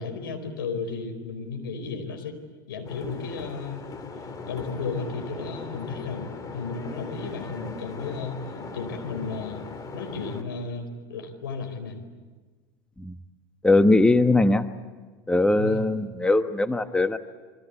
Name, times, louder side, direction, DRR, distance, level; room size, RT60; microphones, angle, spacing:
voice 1, 0.0-2.4 2.7-3.8 4.5-8.4 8.7-9.6 9.9-12.0 15.6-15.8, left 4 dB, 75° left, 6 dB, 4.6 m, -34 dB
sound 1, 2.8-10.4, left 4 dB, 30° left, 3.1 m, -39 dB
voice 2, 13.6-14.7 15.3-17.2, left 2 dB, 10° left, 9 dB, 1.2 m, -20 dB
27.5 x 23.5 x 8.5 m, 1.4 s
hypercardioid pair, 80°, 12 cm